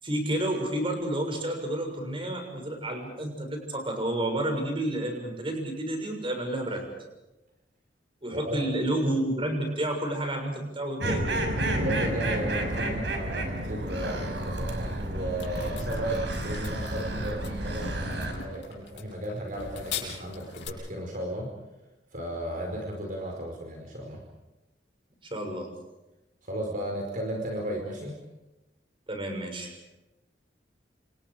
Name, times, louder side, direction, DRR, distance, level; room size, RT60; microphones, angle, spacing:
voice 1, 0.0-6.9 8.2-11.4 25.3-25.7 29.1-29.7, right 1 dB, 30° right, 3 dB, 6.8 m, -30 dB
sound 1, 11.0-18.3, right 1 dB, 70° right, 6.0 m, -30 dB
voice 2, 11.8-21.5 22.1-24.2 26.4-28.2, right 1 dB, 50° right, 1 dB, 4.9 m, -34 dB
sound 2, 15.4-20.7, left 6 dB, 70° left, 7.8 m, -41 dB
29.5 x 28.0 x 5.1 m, 1.0 s
head